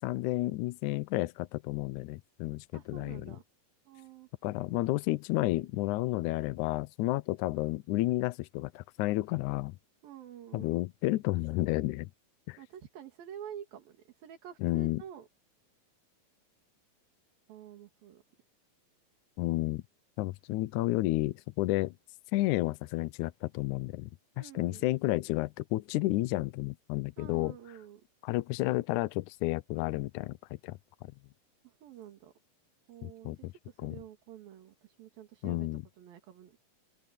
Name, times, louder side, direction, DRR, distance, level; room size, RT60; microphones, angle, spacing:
voice 1, 0.0-3.4 4.4-9.8 10.5-12.1 12.5-12.6 14.6-15.0 19.4-19.8 20.2-21.9 22.3-24.1 24.4-27.5 28.2-30.4 30.6-30.8 33.0-33.5 33.8-34.0 35.4-35.8, left 18 dB, 85° left, 1.7 m, -31 dB
voice 2, 2.7-3.4 3.9-4.3 10.0-10.8 12.6-15.3 17.5-18.2 24.4-24.9 27.2-28.0 31.6-32.3 32.9-33.3 33.7-35.7 36.0-36.6, right 10 dB, 75° right, 4.0 m, -48 dB
open air
omnidirectional pair, 4.2 m